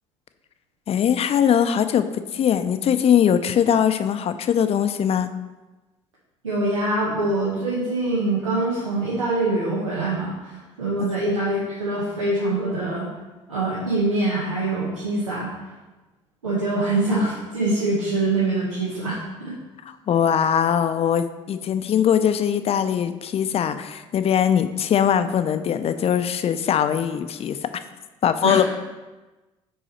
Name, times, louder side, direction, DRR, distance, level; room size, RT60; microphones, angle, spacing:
voice 1, 0.9-2.0 2.3-5.3 19.9-27.6 28.2-28.6, left 8 dB, 40° left, 10 dB, 0.5 m, -21 dB
voice 2, 6.4-13.1 13.5-15.5 16.4-19.5 28.4-28.6, right 2 dB, 90° right, -7 dB, 0.9 m, -24 dB
5.4 x 4.8 x 4.2 m, 1.1 s
hypercardioid pair, 55°, 16 cm